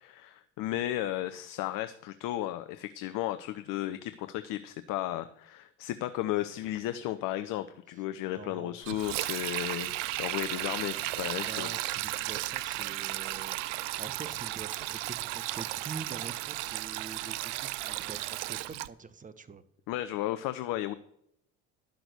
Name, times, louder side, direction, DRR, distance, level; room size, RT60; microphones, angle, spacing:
voice 1, 0.0-9.9 10.2-11.8 19.9-20.9, left 14 dB, 60° left, 11 dB, 0.7 m, -34 dB
voice 2, 7.9-8.8 11.4-13.6 14.0-19.6, right 5 dB, 20° right, 13 dB, 1.1 m, -45 dB
Sink (filling or washing), 8.8-18.9, right 17 dB, 75° right, 0.6 m, -35 dB
11.5 x 6.0 x 6.6 m, 0.72 s
hypercardioid pair, 65°, 37 cm